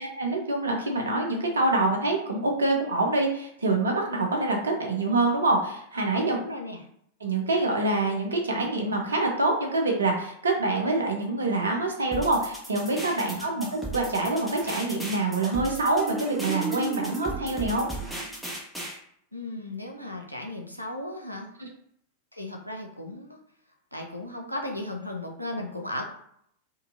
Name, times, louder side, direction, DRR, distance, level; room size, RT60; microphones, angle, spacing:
voice 1, 0.0-6.4 7.2-17.9 21.6-21.7, right 2 dB, 75° right, 1 dB, 0.8 m, -26 dB
voice 2, 6.2-6.9 13.2-13.4 19.3-21.5 22.3-23.4 23.9-26.1, left 1 dB, 90° left, 1 dB, 0.7 m, -36 dB
sound 1, 12.1-19.0, right 1 dB, ahead, 1.1 m, -37 dB
Marimba xylophone, 15.8-18.6, right 4 dB, 25° right, 0.7 m, -35 dB
4.0 x 2.7 x 2.6 m, 0.68 s
figure-of-eight pair, 90°, 0 cm